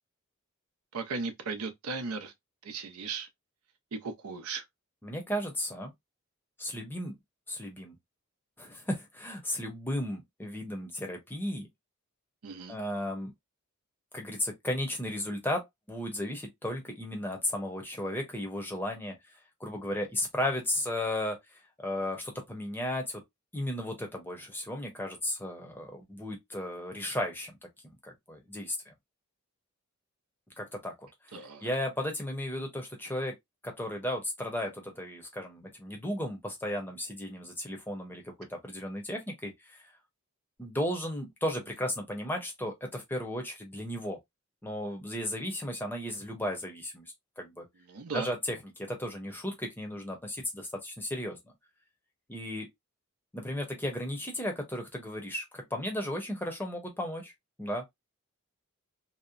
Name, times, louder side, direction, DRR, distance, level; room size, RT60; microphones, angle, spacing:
voice 1, 0.9-2.3 2.6-3.3 3.9-4.6 12.4-12.7 31.3-31.7 47.9-48.3, right 4 dB, 80° right, 0.6 m, -36 dB
voice 2, 5.0-5.9 6.6-7.1 7.5-7.9 8.6-11.7 12.7-13.3 14.1-19.1 19.6-21.4 21.8-23.2 23.5-27.5 27.8-28.9 30.6-30.9 31.6-33.3 33.6-39.8 40.6-44.2 44.6-47.7 48.1-51.4 52.3-52.7 53.3-57.3 57.6-57.8, left 1 dB, 10° left, 0.6 m, -35 dB
2.8 x 2.1 x 2.4 m
head